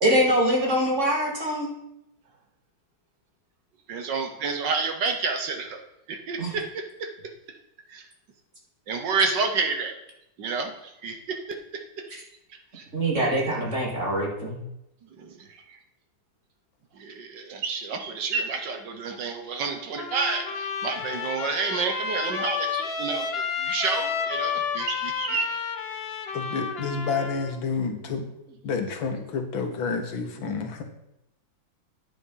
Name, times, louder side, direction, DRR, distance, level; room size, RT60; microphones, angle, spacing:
voice 1, 0.0-1.7 6.4-6.5 12.1-12.2 12.9-14.6, equal, 40° right, -2 dB, 2.6 m, -24 dB
voice 2, 3.9-5.8 6.1-6.8 7.9-8.0 8.9-10.0 10.4-10.7 11.0-11.2 12.7-12.8 15.2-15.3 17.0-25.6, right 4 dB, 65° right, 5 dB, 1.7 m, -29 dB
Trumpet, 19.9-27.5, left 6 dB, 45° left, 0.8 m, -31 dB
voice 3, 26.3-28.2 28.6-30.8, left 5 dB, 85° left, 5 dB, 2.1 m, -29 dB
9.3 x 7.4 x 5.6 m, 0.83 s
omnidirectional pair, 2.1 m